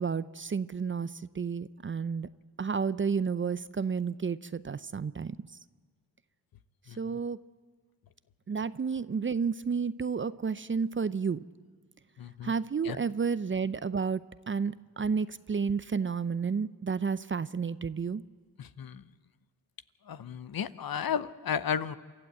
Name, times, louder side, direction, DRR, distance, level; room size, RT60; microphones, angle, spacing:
voice 1, 0.0-2.3 2.6-5.4 7.0-7.4 8.5-11.4 12.4-18.2, right 5 dB, 30° right, 15 dB, 0.6 m, -31 dB
voice 2, 6.9-7.2 12.2-12.5 12.8-13.0 18.6-19.0 20.1-22.0, left 8 dB, 55° left, 14 dB, 0.9 m, -34 dB
27.5 x 13.0 x 7.9 m, 1.5 s
supercardioid pair, 50°, 42 cm